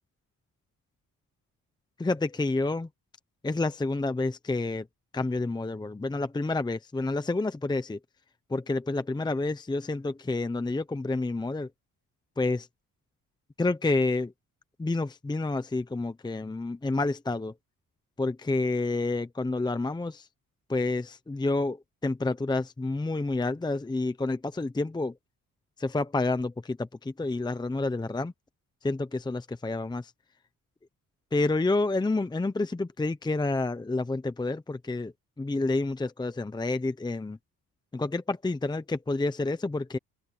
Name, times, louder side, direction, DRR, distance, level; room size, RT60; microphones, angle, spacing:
voice 1, 2.0-2.9 3.4-4.9 5.1-8.0 8.5-11.7 12.4-12.7 13.6-14.3 14.8-17.5 18.2-20.3 20.7-25.2 25.8-28.3 28.8-30.1 31.3-37.4 37.9-40.0, left 2 dB, 10° left, 0.8 m, -29 dB
open air
cardioid pair, 115°, 36 cm